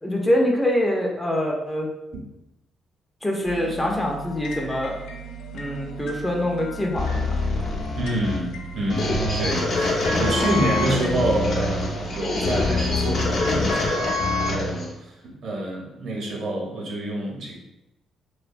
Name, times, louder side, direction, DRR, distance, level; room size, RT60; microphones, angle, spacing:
voice 1, 0.0-1.9 3.2-4.9 5.5-7.4, left 1 dB, 15° left, 0 dB, 0.5 m, -24 dB
sound 1, 3.4-13.4, right 3 dB, 90° left, 0.3 m, -37 dB
sound 2, 7.0-14.9, left 2 dB, 60° left, 0.7 m, -24 dB
voice 2, 8.0-17.6, right 1 dB, 65° right, -2 dB, 0.7 m, -28 dB
2.7 x 2.2 x 2.5 m, 0.90 s
cardioid pair, 90°, 0 cm